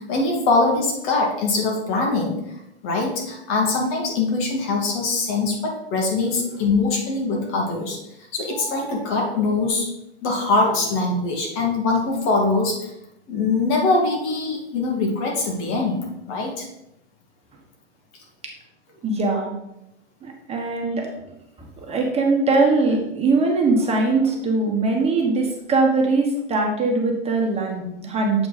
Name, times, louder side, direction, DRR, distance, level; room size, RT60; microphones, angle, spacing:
voice 1, 0.1-2.4 2.8-8.0 8.3-9.9 10.2-12.9 13.3-16.0 16.3-16.7, left 3 dB, 45° left, 0 dB, 2.2 m, -22 dB
voice 2, 8.5-9.1 11.0-11.6 19.0-19.5 20.2-21.2 21.6-28.5, right 3 dB, 20° right, 0 dB, 1.6 m, -22 dB
7.8 x 4.6 x 4.2 m, 0.84 s
hypercardioid pair, 110°, 30 cm